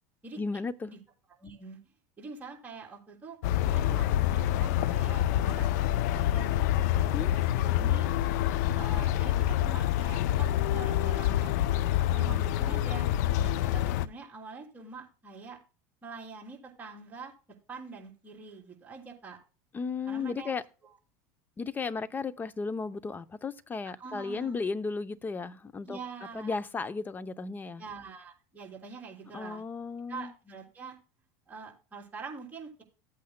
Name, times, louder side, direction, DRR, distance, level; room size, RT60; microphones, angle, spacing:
voice 1, 0.4-0.9 7.1-7.3 19.7-20.6 21.6-26.0 26.3-27.8 29.3-30.3, left 4 dB, 20° left, 0.6 m, -34 dB
voice 2, 1.4-1.8 2.2-3.4 3.7-6.7 7.3-8.1 8.7-11.5 12.1-13.1 13.4-15.6 16.0-17.3 17.7-19.4 20.1-20.5 20.8-20.9 24.0-24.7 25.9-26.5 27.8-29.6 30.1-31.0 31.5-32.8, right 4 dB, 20° right, 3.3 m, -45 dB
sound 1, 3.4-14.1, left 12 dB, 75° left, 0.5 m, -27 dB
15.0 x 8.4 x 2.2 m
supercardioid pair, 115°, 9 cm